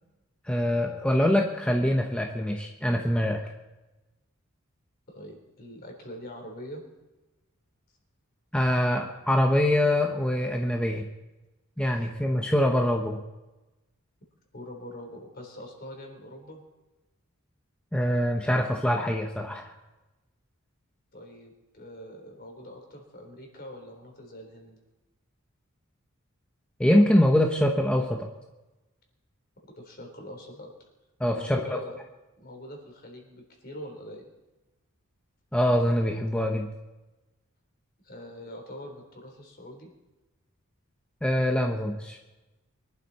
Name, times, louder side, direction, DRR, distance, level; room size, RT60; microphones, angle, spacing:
voice 1, 0.4-3.4 8.5-11.1 11.8-13.2 17.9-19.7 26.8-28.3 31.2-31.8 35.5-36.7 41.2-42.2, left 1 dB, 5° left, 2 dB, 0.9 m, -24 dB
voice 2, 5.1-6.8 12.0-12.1 14.5-16.6 21.1-24.8 29.8-30.7 31.3-32.0 32.4-34.2 38.0-39.9, left 1 dB, 45° left, 2 dB, 3.8 m, -43 dB
23.5 x 12.0 x 4.2 m, 1.1 s
head